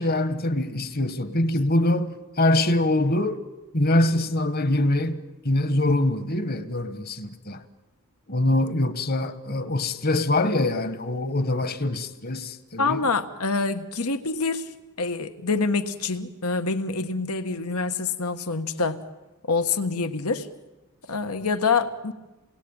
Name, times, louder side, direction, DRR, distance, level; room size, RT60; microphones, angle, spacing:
voice 1, 0.0-3.4 3.7-7.6 8.3-13.0, left 1 dB, 45° left, 1.5 m, -24 dB
voice 2, 12.8-14.7 15.0-19.0 19.4-20.5 21.1-22.1, left 4 dB, 90° left, 1.5 m, -26 dB
28.5 x 21.5 x 9.0 m
head